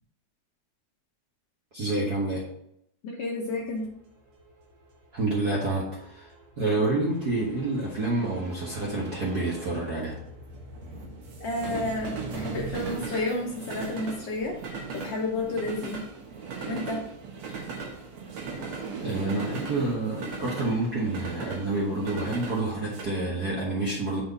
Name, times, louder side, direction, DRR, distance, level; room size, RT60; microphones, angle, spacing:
voice 1, 1.7-2.4 5.1-6.3 6.6-10.1 19.0-24.2, right 2 dB, 45° right, -5 dB, 1.4 m, -28 dB
voice 2, 3.0-3.8 11.4-14.6 14.9-16.0 16.7-17.0, left 2 dB, 65° left, -1 dB, 1.7 m, -31 dB
sound 1, 3.5-23.0, right 4 dB, 60° right, 2.3 m, -39 dB
6.0 x 4.5 x 5.5 m, 0.74 s
omnidirectional pair, 3.6 m